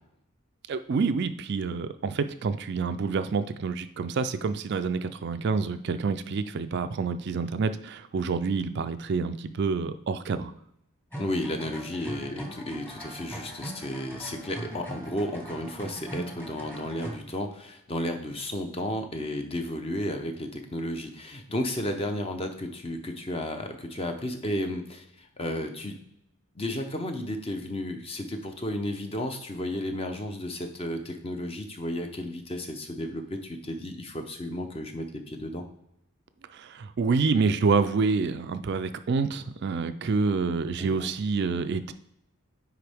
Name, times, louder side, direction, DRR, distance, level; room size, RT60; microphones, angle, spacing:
voice 1, 0.7-10.5 36.5-41.9, right 4 dB, 50° right, 10 dB, 0.3 m, -27 dB
sound 1, 11.1-17.2, right 1 dB, 10° left, 1.2 m, -40 dB
voice 2, 11.2-25.9 26.6-35.6 40.8-41.1, left 1 dB, 25° left, 5 dB, 0.7 m, -33 dB
9.5 x 3.7 x 3.5 m, 0.78 s
head